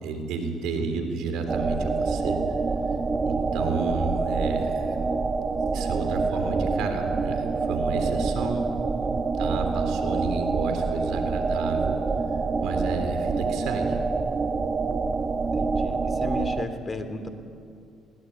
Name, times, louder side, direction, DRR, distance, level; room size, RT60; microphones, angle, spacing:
voice 1, 0.0-2.4 3.2-5.0 5.7-8.7 9.4-12.0 12.6-14.0, right 4 dB, 80° right, 6 dB, 3.6 m, -31 dB
voice 2, 0.8-1.2 15.5-17.3, left 2 dB, 40° left, 8 dB, 3.3 m, -34 dB
sound 1, 1.5-16.7, right 4 dB, 40° right, 1.4 m, -26 dB
21.5 x 18.5 x 9.6 m, 2.4 s
supercardioid pair, 65°, 0 cm